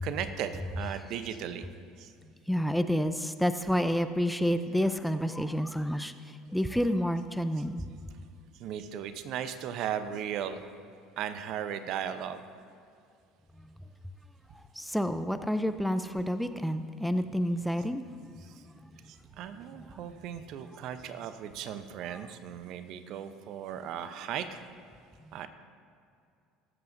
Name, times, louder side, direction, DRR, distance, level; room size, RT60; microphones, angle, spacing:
voice 1, 0.0-1.6 2.0-2.1 8.6-10.7 11.2-12.4 18.4-18.6 19.1-24.7 25.3-25.5, right 9 dB, 60° right, 10 dB, 0.7 m, -37 dB
voice 2, 2.5-7.8 14.7-18.0 18.3-18.4 18.8-18.9 19.8-19.9 22.1-22.2 25.3-25.5, equal, ahead, 9 dB, 0.5 m, -29 dB
21.0 x 8.0 x 2.6 m, 2.4 s
hypercardioid pair, 70°, 0 cm